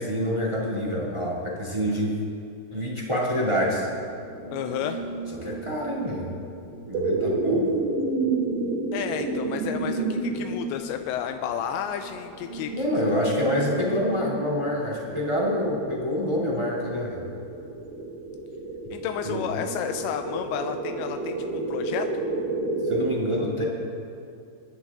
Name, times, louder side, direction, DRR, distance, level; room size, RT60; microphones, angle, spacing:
voice 1, 0.0-2.2 2.7-3.9 5.4-6.3 6.9-7.7 12.7-17.2 19.2-19.4 22.8-23.6, equal, 20° right, -4 dB, 0.8 m, -26 dB
sound 1, 3.2-23.1, right 2 dB, 55° right, 3.7 m, -31 dB
voice 2, 4.5-5.0 8.9-12.9 18.9-22.2, left 9 dB, 85° left, 6 dB, 2.8 m, -32 dB
27.5 x 10.5 x 3.6 m, 2.5 s
omnidirectional pair, 5.1 m